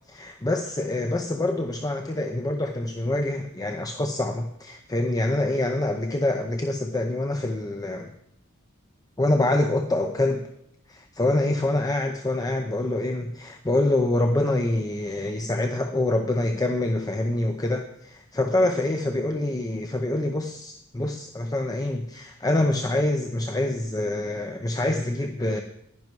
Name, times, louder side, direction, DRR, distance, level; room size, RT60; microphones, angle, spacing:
voice 1, 0.1-8.1 9.2-10.5 10.9-25.6, left 1 dB, 15° left, 5 dB, 0.7 m, -25 dB
11.0 x 10.5 x 4.6 m, 0.76 s
head